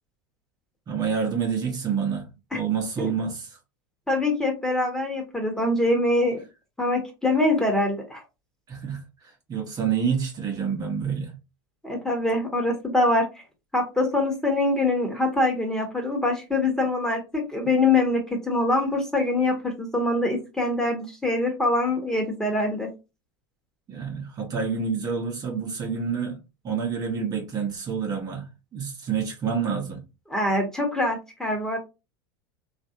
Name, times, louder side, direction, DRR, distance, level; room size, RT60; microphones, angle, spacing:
voice 1, 0.9-3.6 8.7-11.3 23.9-30.0, right 6 dB, 35° right, 1.0 m, -28 dB
voice 2, 4.1-6.4 6.8-8.2 11.8-13.3 13.7-22.9 30.3-31.8, left 2 dB, 5° left, 1.2 m, -24 dB
3.2 x 2.5 x 2.8 m
hypercardioid pair, 95°, 11 cm